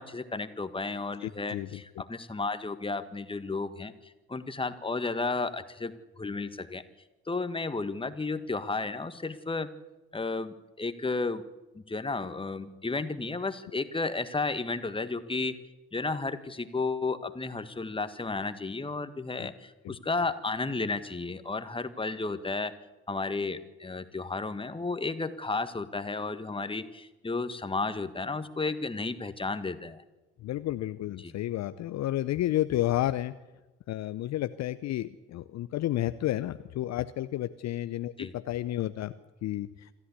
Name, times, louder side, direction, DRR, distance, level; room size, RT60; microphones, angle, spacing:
voice 1, 0.0-6.8 7.3-9.7 10.1-11.4 11.7-15.5 15.9-22.7 23.1-30.0 31.2-31.3 38.2-38.3, left 3 dB, 15° left, 11 dB, 1.6 m, -33 dB
voice 2, 1.2-1.8 19.4-19.5 19.8-20.0 30.4-33.3 33.9-39.1 39.4-39.9, left 14 dB, 50° left, 12 dB, 0.8 m, -31 dB
26.5 x 14.0 x 8.4 m, 1.1 s
figure-of-eight pair, 55°, 36 cm